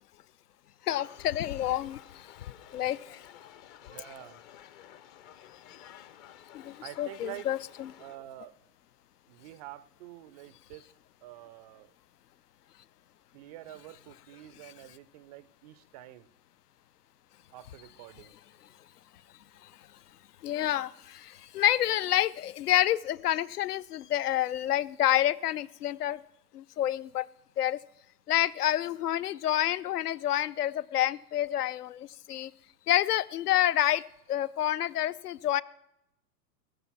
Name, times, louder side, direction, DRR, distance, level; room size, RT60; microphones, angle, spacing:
voice 1, 0.8-2.3 2.7-3.2 6.5-7.9 19.6-19.7 20.4-26.2 26.5-27.3 27.6-27.8 28.3-32.5 32.9-35.6, left 12 dB, 70° left, 19 dB, 0.7 m, -28 dB
sound 1, 0.9-8.2, left 10 dB, 30° left, 0.6 m, -52 dB
voice 2, 3.8-4.4 6.8-7.5 8.0-8.6 9.3-10.9 11.2-11.9 13.3-16.3 17.5-18.3, right 15 dB, 25° right, 17 dB, 0.4 m, -47 dB
19.0 x 6.9 x 5.7 m, 0.84 s
figure-of-eight pair, 100°, 47 cm